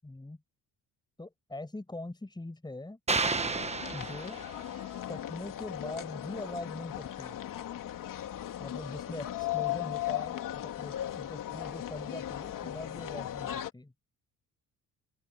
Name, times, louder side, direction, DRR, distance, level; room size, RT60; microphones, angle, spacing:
voice 1, 0.0-0.4 1.2-3.0 3.9-4.4 5.1-7.4 8.6-13.9, left 2 dB, 10° left, 6.6 m, -42 dB
sound 1, 3.1-4.8, right 3 dB, 20° right, 1.3 m, -31 dB
sound 2, 3.2-13.7, left 12 dB, 65° left, 2.8 m, -37 dB
open air
cardioid pair, 100°, 35 cm